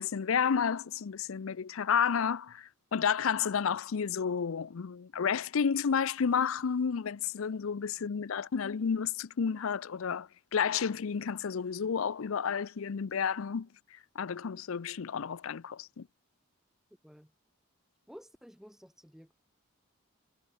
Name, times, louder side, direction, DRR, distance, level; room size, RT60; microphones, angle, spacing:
voice 1, 0.0-13.7 14.2-16.1, left 6 dB, 80° left, 0.5 m, -31 dB
voice 2, 18.1-19.3, equal, ahead, 3.3 m, -52 dB
head